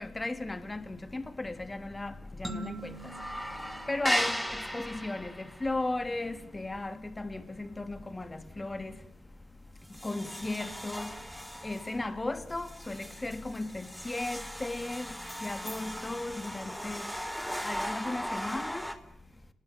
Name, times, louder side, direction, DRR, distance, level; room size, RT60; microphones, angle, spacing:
voice 1, 0.0-3.0 3.9-8.9 10.0-11.1 11.6-17.1 17.6-18.9, left 2 dB, 20° left, 3.4 m, -36 dB
sound 1, 0.8-1.3 1.5-1.6 2.0-2.6 2.8-8.1 8.5-8.8 9.3-9.4 9.8-19.0, equal, ahead, 3.6 m, -38 dB
sound 2, 2.4-5.1, right 1 dB, 15° right, 5.7 m, -44 dB
30.0 x 21.0 x 9.0 m
supercardioid pair, 60°, 0 cm